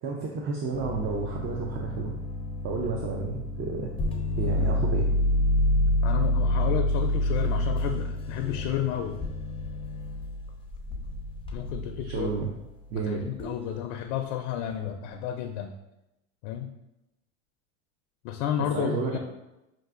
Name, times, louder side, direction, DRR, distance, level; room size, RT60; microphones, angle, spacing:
voice 1, 0.0-2.1 2.6-3.9 4.4-5.0 12.0-12.5 12.9-13.2 18.6-19.2, right 4 dB, 35° right, 0 dB, 0.5 m, -31 dB
sound 1, 0.7-12.5 13.4-13.7, left 1 dB, 15° left, 0.5 m, -28 dB
voice 2, 6.0-9.2 11.5-12.3 13.1-15.7 16.4-16.7 18.2-19.2, left 9 dB, 65° left, 4 dB, 0.5 m, -31 dB
5.8 x 2.5 x 2.4 m, 0.92 s
supercardioid pair, 110°, 37 cm